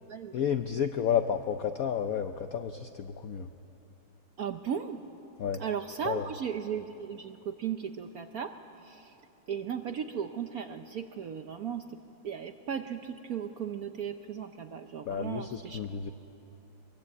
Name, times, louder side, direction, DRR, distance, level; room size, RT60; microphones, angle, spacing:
voice 1, 0.3-3.5 5.4-5.6 6.0-6.3 15.1-16.1, left 8 dB, 70° left, 8 dB, 0.8 m, -31 dB
voice 2, 4.4-5.0 5.6-8.5 8.9-9.1 9.5-11.8 12.2-15.8, right 8 dB, 65° right, 8 dB, 0.9 m, -36 dB
23.0 x 23.0 x 8.5 m, 3.0 s
omnidirectional pair, 2.3 m